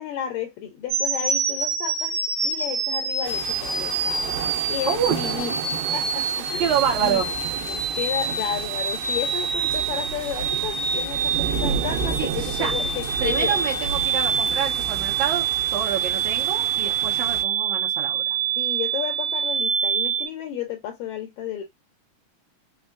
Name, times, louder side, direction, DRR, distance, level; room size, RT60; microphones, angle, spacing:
voice 1, 0.0-4.3 4.7-6.7 7.0-7.2 7.7-13.6 18.6-21.6, left 10 dB, 80° left, 1.6 m, -32 dB
sound 1, 0.9-20.3, right 6 dB, 45° right, 1.3 m, -26 dB
sound 2, 3.2-17.4, right 7 dB, 90° right, 2.3 m, -32 dB
voice 2, 4.9-5.2 6.6-7.3 8.3-8.4 12.2-12.7 13.2-15.5 15.7-18.4, right 8 dB, 75° right, 1.8 m, -27 dB
5.3 x 2.2 x 2.4 m
omnidirectional pair, 3.9 m